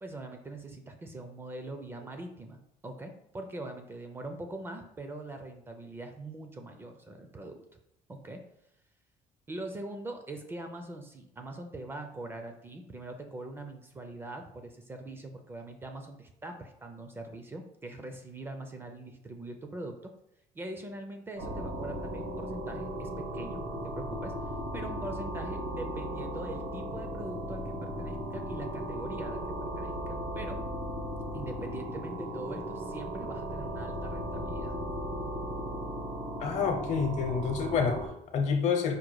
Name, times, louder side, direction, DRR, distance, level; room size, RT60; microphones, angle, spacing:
voice 1, 0.0-7.6 8.1-8.4 9.5-20.1 20.5-24.3 24.7-30.6 31.3-34.7, right 2 dB, 15° right, 5 dB, 0.4 m, -42 dB
sound 1, 21.4-38.1, equal, 85° right, 1.2 m, -36 dB
voice 2, 36.4-39.0, left 6 dB, 55° left, 5 dB, 0.8 m, -28 dB
5.0 x 2.2 x 4.6 m, 0.77 s
cardioid pair, 160°, 14 cm